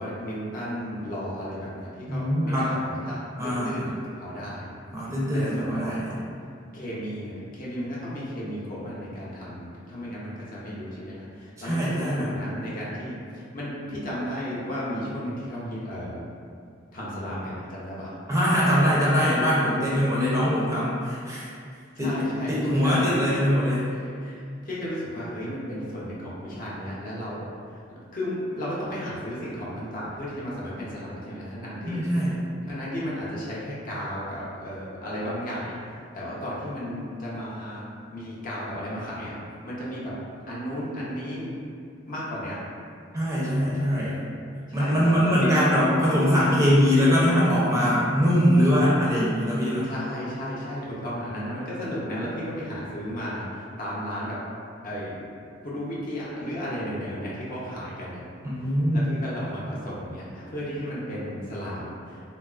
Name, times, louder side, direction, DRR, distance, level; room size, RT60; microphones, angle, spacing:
voice 1, 0.0-4.7 5.0-6.1 6.7-16.2 16.9-18.2 21.9-23.4 23.9-32.2 32.7-39.3 39.6-40.1 40.5-41.5 42.1-42.6 44.7-45.7 49.8-54.4 54.8-55.2 55.6-58.2 58.9-62.2, equal, 45° left, -7 dB, 0.6 m, -34 dB
voice 2, 2.1-2.7 3.4-3.8 4.9-6.0 11.6-12.3 18.3-21.5 22.0-22.2 22.5-23.8 31.9-32.4 43.1-44.2 44.7-49.9 58.4-59.1, equal, 15° right, -8 dB, 0.4 m, -22 dB
3.1 x 2.2 x 2.3 m, 2.3 s
head